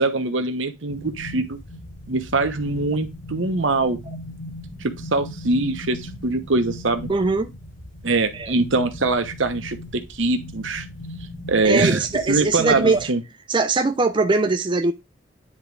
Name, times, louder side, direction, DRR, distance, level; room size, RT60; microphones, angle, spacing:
voice 1, 0.0-1.6 2.1-4.0 4.8-7.1 8.0-10.9 11.5-12.0 12.3-13.2, right 3 dB, 70° right, 1.1 m, -23 dB
sound 1, 0.9-13.0, left 1 dB, 85° left, 2.3 m, -38 dB
voice 2, 7.1-7.5 8.3-8.5 11.6-13.1 13.5-14.9, right 3 dB, 25° right, 0.5 m, -21 dB
10.0 x 3.7 x 3.4 m
head